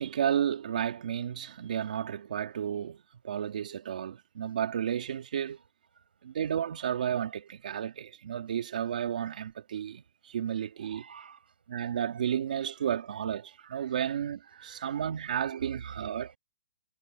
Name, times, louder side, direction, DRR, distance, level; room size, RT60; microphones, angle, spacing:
voice 1, 0.0-5.6 6.2-11.0 11.7-16.3, right 9 dB, 55° right, 2.8 m, -32 dB
voice 2, 10.8-11.5 11.8-11.9 14.6-16.4, right 6 dB, 80° right, 6.2 m, -49 dB
hypercardioid pair, 170°, 5 cm